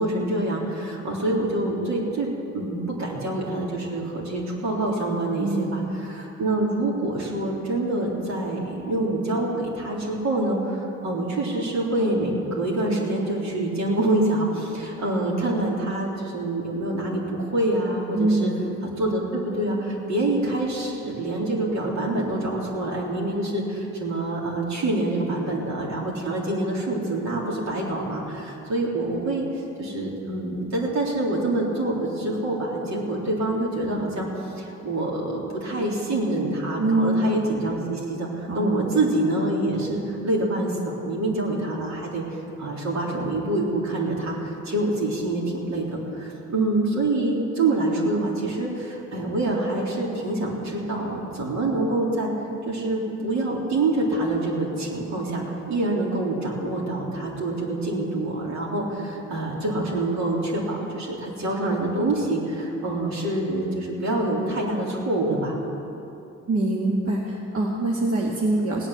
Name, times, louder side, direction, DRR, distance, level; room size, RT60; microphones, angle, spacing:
voice 1, 0.0-5.8 6.1-18.5 19.0-29.5 29.8-34.3 34.6-42.2 42.6-52.3 52.6-65.5, right 2 dB, 65° right, -3 dB, 3.6 m, -26 dB
voice 2, 5.4-5.9 18.1-18.8 36.8-37.2 38.5-39.0 66.5-68.9, right 2 dB, 50° right, -2 dB, 1.7 m, -24 dB
17.5 x 9.0 x 7.3 m, 2.9 s
cardioid pair, 90°, 30 cm